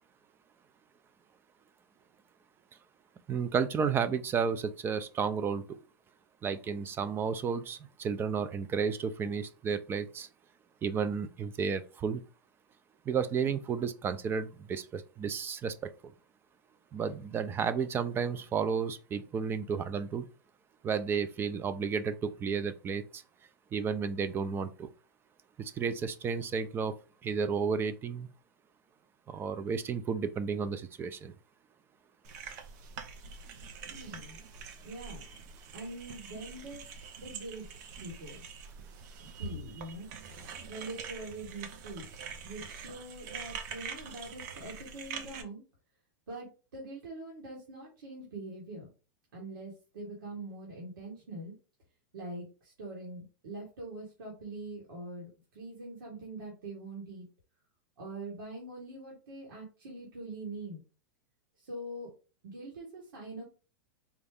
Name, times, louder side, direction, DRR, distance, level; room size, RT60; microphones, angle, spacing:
voice 1, 3.3-5.8 6.4-10.3 10.8-12.2 13.1-15.7 16.0-16.1 16.9-20.3 20.8-23.2 23.7-24.9 25.6-26.9 27.2-28.3 29.3-31.3 39.2-39.5, right 6 dB, 20° right, 0.4 m, -32 dB
sound 1, 32.2-45.4, right 5 dB, 60° right, 0.7 m, -44 dB
voice 2, 33.9-34.4 34.8-35.2 35.7-36.8 37.1-37.7 38.0-38.4 39.3-40.1 40.7-42.1 42.4-45.6 46.3-48.9 49.3-51.6 52.1-55.3 55.5-57.3 58.0-60.8 61.6-62.1 62.4-63.4, right 2 dB, 85° right, 1.7 m, -43 dB
4.1 x 2.3 x 3.4 m
hypercardioid pair, 130°, 11 cm